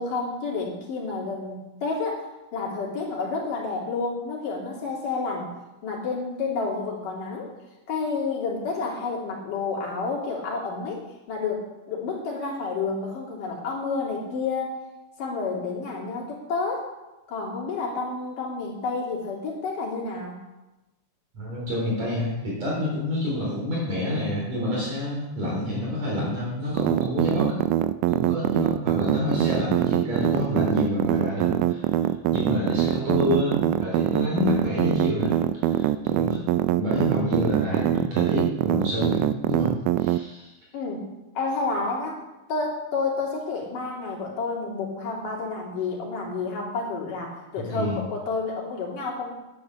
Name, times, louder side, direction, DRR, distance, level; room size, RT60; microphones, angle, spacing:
voice 1, 0.0-2.2 2.5-5.5 5.8-7.5 7.9-11.0 11.3-11.6 11.9-14.8 15.2-16.8 17.3-20.4 40.7-41.1 41.4-42.2 42.5-49.3, left 4 dB, 80° left, -3 dB, 4.4 m, -30 dB
voice 2, 21.3-27.6 28.1-31.9 32.3-36.4 36.7-40.5 47.7-48.0, left 1 dB, 55° right, -5 dB, 5.0 m, -28 dB
sound 1, 26.8-40.2, right 13 dB, 80° right, 2.0 m, -23 dB
10.5 x 10.0 x 7.0 m, 1.0 s
omnidirectional pair, 3.7 m